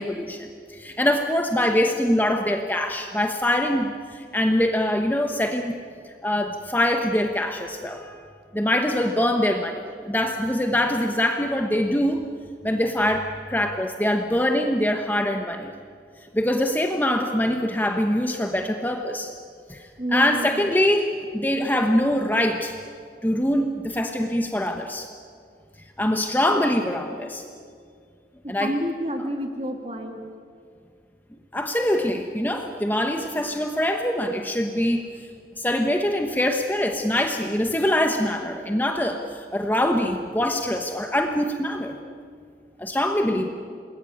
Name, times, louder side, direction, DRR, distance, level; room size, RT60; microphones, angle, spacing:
voice 1, 0.0-5.8 6.2-8.2 8.5-12.3 12.6-15.7 16.3-19.3 19.7-19.8 20.1-22.7 23.2-25.1 26.0-27.4 28.5-28.7 31.5-35.0 35.6-42.0 42.8-43.5, left 1 dB, 10° left, 4 dB, 1.0 m, -23 dB
voice 2, 20.0-20.7 28.4-30.2 43.3-43.5, equal, 35° right, 3 dB, 2.8 m, -29 dB
28.0 x 20.5 x 8.7 m, 2.2 s
head